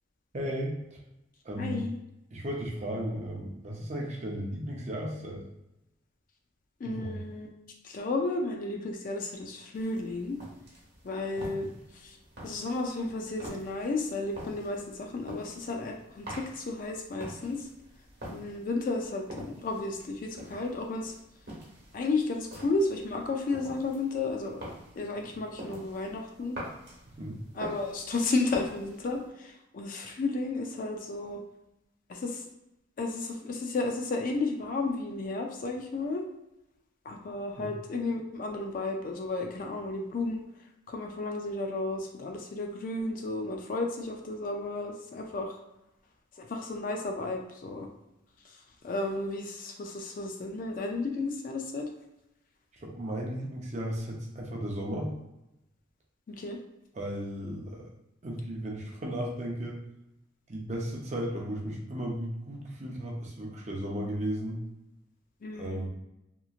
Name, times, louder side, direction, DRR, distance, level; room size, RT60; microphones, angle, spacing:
voice 1, 0.3-1.0 1.4-1.8 2.3-5.4 6.8-7.2 11.6-11.7 27.0-27.4 37.6-37.7 52.7-55.2 56.9-57.9 58.2-59.8 60.5-64.6 65.5-65.9, equal, 35° right, -1 dB, 0.6 m, -35 dB
voice 2, 1.6-2.0 6.8-7.5 7.8-10.4 11.0-11.7 11.9-12.2 12.4-17.6 18.3-21.1 21.9-24.7 25.0-26.6 27.5-31.4 32.1-32.4 33.0-36.2 37.1-40.4 40.9-45.6 46.5-47.9 48.8-51.9 56.3-56.6 65.4-65.8, left 3 dB, 40° left, 2 dB, 0.3 m, -33 dB
sound 1, 9.7-29.3, right 1 dB, 50° right, 1.0 m, -47 dB
2.9 x 2.5 x 2.4 m, 0.90 s
head